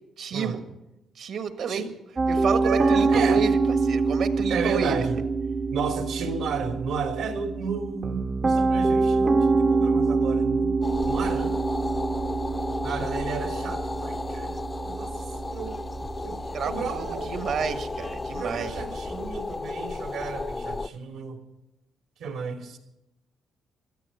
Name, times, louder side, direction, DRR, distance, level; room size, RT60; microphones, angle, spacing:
voice 1, 0.2-0.6 1.1-1.8 2.3-5.1 16.5-18.7, right 6 dB, 70° right, 8 dB, 1.6 m, -30 dB
Piano, 2.2-19.3, right 3 dB, 30° right, 0.5 m, -26 dB
voice 2, 2.6-3.4 4.5-5.2 5.7-10.8 11.1-11.6 12.8-15.1 15.4-15.8 16.2-17.3 18.3-21.4 22.2-22.8, right 5 dB, 85° right, 3 dB, 3.0 m, -32 dB
sound 1, 10.8-20.9, left 3 dB, 25° left, 0.5 m, -34 dB
18.0 x 14.0 x 5.6 m, 0.92 s
cardioid pair, 90°, 0 cm